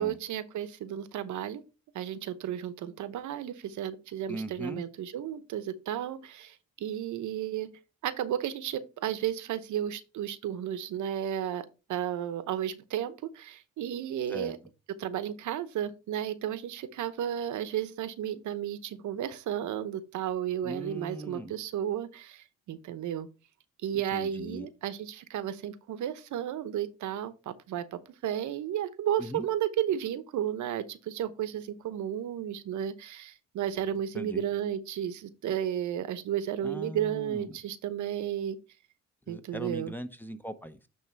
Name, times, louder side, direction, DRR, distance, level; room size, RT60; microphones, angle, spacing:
voice 1, 0.0-1.6 1.9-7.7 8.0-14.6 15.0-23.3 23.8-38.6 39.3-39.9, right 10 dB, 75° right, 0.9 m, -33 dB
voice 2, 4.3-4.8 14.3-14.5 20.6-21.5 24.1-24.7 29.2-29.5 34.1-34.4 36.6-37.5 39.3-40.9, equal, 5° left, 0.8 m, -39 dB
9.4 x 3.2 x 4.5 m
cardioid pair, 90°, 30 cm